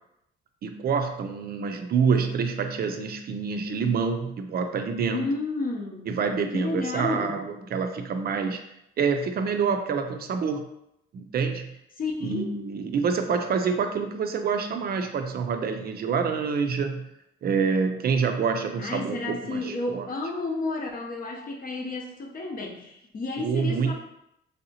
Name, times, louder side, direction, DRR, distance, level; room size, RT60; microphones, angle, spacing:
voice 1, 0.6-5.3 6.1-8.6 9.0-10.6 11.1-11.6 12.2-17.0 17.4-20.1 23.4-23.9, right 5 dB, 50° right, 6 dB, 0.4 m, -27 dB
voice 2, 5.1-6.2 6.5-7.4 12.0-12.5 18.8-23.9, left 3 dB, 45° left, 1 dB, 0.7 m, -31 dB
3.4 x 2.7 x 2.7 m, 0.81 s
cardioid pair, 90°, 20 cm